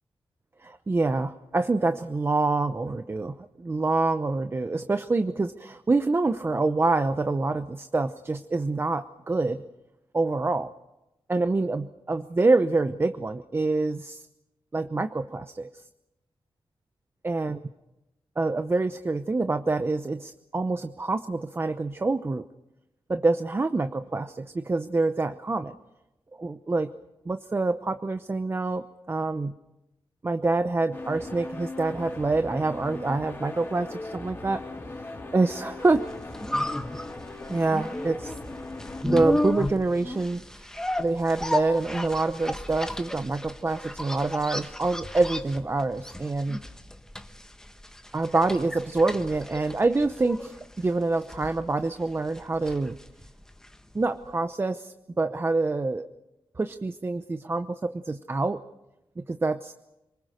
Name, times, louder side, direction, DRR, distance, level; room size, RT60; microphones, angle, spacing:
voice 1, 0.6-9.6 10.1-10.7 11.3-14.3 14.7-15.7 17.2-17.6 18.4-22.5 23.1-25.7 26.4-26.9 27.3-29.6 30.2-34.6 35.3-36.0 37.5-38.3 39.0-40.7 41.0-46.6 48.1-53.0 53.9-56.1 56.6-58.6 59.2-59.7, right 3 dB, 25° right, 10 dB, 0.7 m, -26 dB
sound 1, 30.9-39.0, left 2 dB, 25° left, 4.0 m, -39 dB
sound 2, 35.9-54.0 54.2-54.3, left 1 dB, 5° left, 1.3 m, -34 dB
27.5 x 20.5 x 6.5 m, 0.92 s
wide cardioid pair, 135°, 9 cm